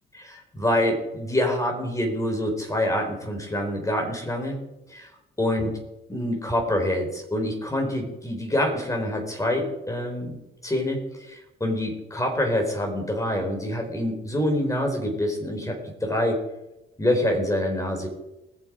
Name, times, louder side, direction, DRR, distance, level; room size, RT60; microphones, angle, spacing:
voice 1, 0.1-4.6 4.9-5.1 5.4-5.8 6.1-10.4 10.6-16.4 17.0-18.1, left 1 dB, 15° left, 2 dB, 4.3 m, -26 dB
20.5 x 7.7 x 5.0 m, 0.96 s
cardioid pair, 90°, 20 cm